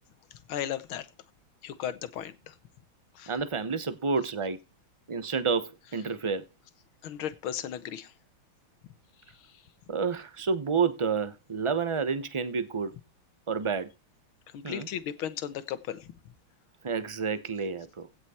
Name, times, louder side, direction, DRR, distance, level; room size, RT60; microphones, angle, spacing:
voice 1, 0.5-1.1 1.6-2.6 3.2-3.3 7.0-8.1 14.5-16.1, left 10 dB, 85° left, 1.9 m, -35 dB
voice 2, 3.3-4.6 5.1-6.4 9.9-12.9 13.5-13.9 14.6-14.9 16.8-18.1, right 5 dB, 45° right, 0.4 m, -29 dB
16.5 x 6.1 x 4.3 m
omnidirectional pair, 2.2 m